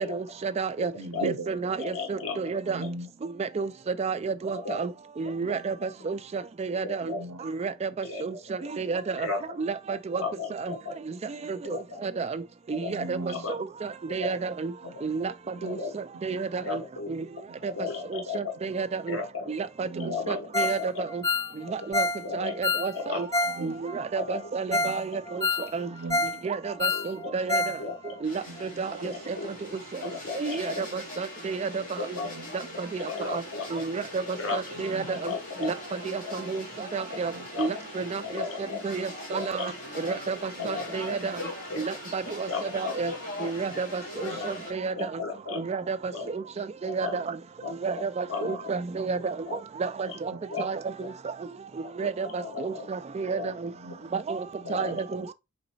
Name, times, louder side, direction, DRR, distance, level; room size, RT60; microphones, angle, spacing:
voice 1, 0.1-0.9 1.2-2.8 3.4-3.7 4.0-4.9 5.2-5.7 6.1-7.1 7.4-7.9 8.2-9.3 9.6-10.2 10.5-10.7 11.4-12.4 12.7-14.7 15.0-15.3 15.6-16.8 17.1-17.2 17.6-17.7 18.1-19.2 19.5-19.9 20.3-21.2 21.9-22.1 22.3-23.3 23.6-25.4 25.7-25.9 26.4-27.8 28.2-29.4 30.4-31.8 32.8-33.4 33.7-34.2 34.5-35.3 35.6-35.7 36.0-37.3 37.6-38.4 38.8-39.7 40.0-41.4 41.8-42.5 42.7-43.1 43.4-45.1 45.6-47.4 47.8-49.4 49.8-50.1 50.6-50.8 52.0-53.4 54.1-54.4 54.7-55.3, right 5 dB, 30° right, 0.3 m, -31 dB
voice 2, 1.0-1.5 2.6-3.1 4.0-4.1 5.4-5.6 7.0-7.4 11.4-11.6 12.9-13.4 14.8-14.9 15.5-15.7 16.1-16.4 17.5-17.6 19.8-20.2 23.5-23.8 24.7-25.0 25.9-26.4 27.2-27.3 28.5-28.9 32.2-32.8 34.8-35.2 37.3-37.5 38.6-38.7 40.6-40.7 44.3-44.4 45.6-45.7 50.3-50.4 53.4-54.0 54.6-55.0, right 3 dB, 90° right, 0.6 m, -39 dB
voice 3, 1.8-2.5 2.8-2.9 4.5-4.8 6.8-7.2 8.0-8.4 9.2-9.5 10.2-10.9 11.6-12.0 12.7-12.9 13.3-13.6 14.2-14.4 14.8-15.1 15.6-15.9 16.5-17.1 17.6-18.5 19.1-19.5 20.0-21.0 22.2-22.6 22.9-23.2 24.1-24.5 25.3-25.4 26.8-27.3 27.8-28.2 29.0-29.5 30.0-30.8 32.0-32.3 33.0-33.8 34.3-34.6 35.2-35.7 36.2-36.4 37.1-37.2 37.5-37.7 38.2-38.8 39.3-39.7 40.0-40.2 40.6-41.1 41.7-42.0 42.5-42.9 43.4-43.5 44.2-44.5 45.0-45.6 46.1-46.3 46.8-47.2 47.6-47.7 48.3-48.7 49.1-49.6 50.1-50.2 50.5-50.7 51.0-51.1 51.8-51.9 52.4-52.9 53.4-53.5 54.6-55.0, left 4 dB, 70° left, 1.2 m, -35 dB
Ringtone, 20.5-20.8 21.1-23.6 23.9-24.0 24.4-24.5 24.7-25.0 25.3-26.4 26.7-27.8 28.0-28.1 28.6-28.7, left 2 dB, 15° left, 0.6 m, -27 dB
sound 1, 28.2-44.7, left 1 dB, 40° left, 2.2 m, -41 dB
4.1 x 3.9 x 2.6 m
head